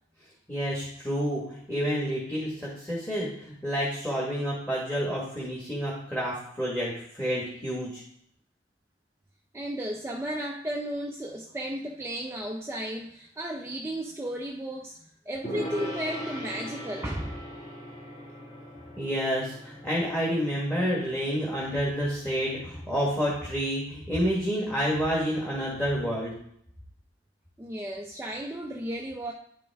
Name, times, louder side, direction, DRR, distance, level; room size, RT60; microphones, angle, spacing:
voice 1, 0.5-8.0 19.0-26.3, equal, 10° left, -6 dB, 1.4 m, -29 dB
voice 2, 9.5-17.4 27.6-29.3, equal, 15° right, 0 dB, 0.4 m, -34 dB
Gong, 15.4-22.9, equal, 35° left, 1.9 m, -40 dB
9.6 x 5.2 x 3.5 m, 0.69 s
head